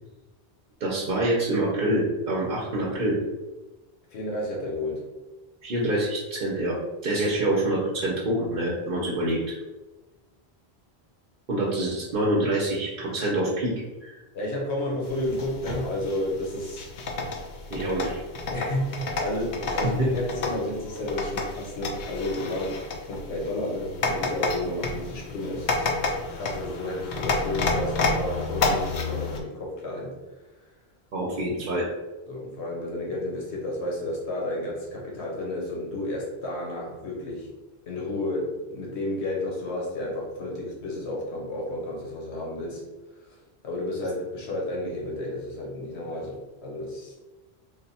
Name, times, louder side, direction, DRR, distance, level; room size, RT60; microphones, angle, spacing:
voice 1, 0.8-3.2 5.6-9.4 11.5-14.1 17.7-18.2 20.0-20.1 31.1-31.9, right 1 dB, 55° right, -4 dB, 0.8 m, -26 dB
voice 2, 4.1-5.1 14.3-16.9 18.5-30.1 32.3-37.6 37.9-42.8 43.6-47.2, left 1 dB, 85° left, -2 dB, 1.2 m, -31 dB
sound 1, 15.0-29.4, left 3 dB, 55° left, 0.6 m, -30 dB
3.3 x 2.2 x 4.0 m, 1.1 s
omnidirectional pair, 1.1 m